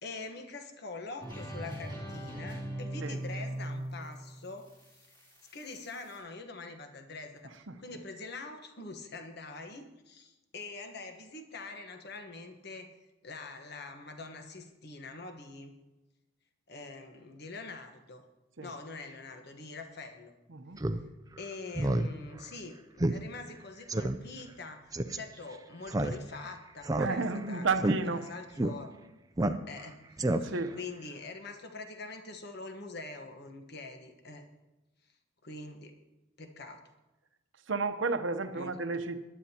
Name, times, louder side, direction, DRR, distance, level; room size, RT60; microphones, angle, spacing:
voice 1, 0.0-4.7 5.5-7.5 7.8-12.9 13.2-15.7 16.7-18.2 18.6-20.3 21.4-28.9 29.7-34.5 35.4-36.0 36.4-36.8 38.5-38.7, left 3 dB, 50° left, 5 dB, 1.2 m, -44 dB
sound 1, 1.2-6.2, right 1 dB, 20° left, 3.0 m, -40 dB
voice 2, 20.5-20.8 27.0-28.2 30.4-30.8 37.7-39.2, right 4 dB, 65° right, 8 dB, 0.8 m, -32 dB
Speech synthesizer, 20.8-21.0 21.4-21.5 21.8-22.1 22.4-22.5 23.0-23.2 23.5-23.6 23.9-24.2 24.9-25.2 25.9-26.5 26.8-27.4 27.8-28.0 28.6-28.7 29.4-29.9 30.2-30.7, right 1 dB, 15° right, 0.4 m, -29 dB
20.0 x 11.5 x 2.9 m, 1.0 s
head